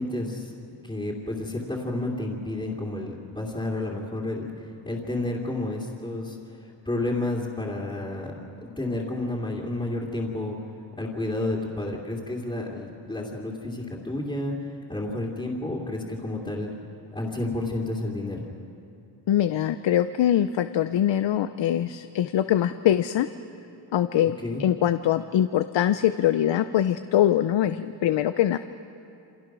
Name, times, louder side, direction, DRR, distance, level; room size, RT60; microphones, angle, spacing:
voice 1, 0.0-6.4 6.6-8.3 8.6-10.6 11.0-16.7 17.1-18.4 24.4-24.6, left 2 dB, 10° left, -6 dB, 2.8 m, -31 dB
voice 2, 19.3-23.3 23.9-24.3 24.6-28.6, left 11 dB, 85° left, 11 dB, 0.7 m, -23 dB
28.5 x 27.0 x 6.2 m, 2.8 s
wide cardioid pair, 145°, 43 cm